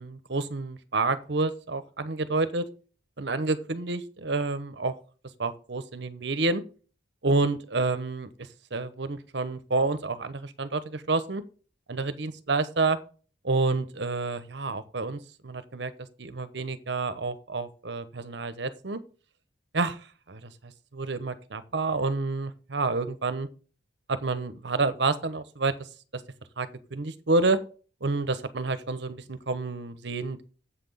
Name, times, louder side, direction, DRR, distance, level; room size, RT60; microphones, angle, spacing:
voice 1, 0.0-2.7 3.2-4.9 5.4-6.6 7.2-8.3 8.7-11.4 11.9-13.0 13.4-15.9 16.2-19.0 19.7-20.5 20.9-23.5 24.1-25.7 26.6-27.6 28.0-30.4, right 3 dB, 65° right, 12 dB, 0.9 m, -29 dB
8.0 x 5.9 x 6.9 m, 0.38 s
head